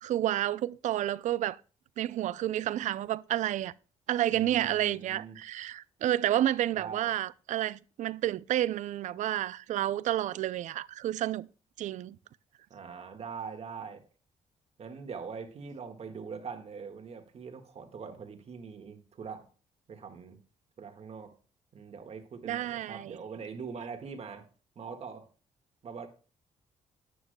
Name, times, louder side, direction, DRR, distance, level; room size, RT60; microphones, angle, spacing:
voice 1, 0.0-1.6 2.0-3.7 4.1-11.5 11.8-12.2 22.5-23.2, right 12 dB, 75° right, 0.4 m, -30 dB
voice 2, 4.3-5.4 6.7-7.2 12.7-14.0 14.8-19.5 19.9-20.4 20.8-21.3 21.7-24.5 24.7-25.3 25.8-26.1, right 5 dB, 55° right, 1.8 m, -42 dB
11.5 x 9.9 x 2.2 m
cardioid pair, 90°, 13 cm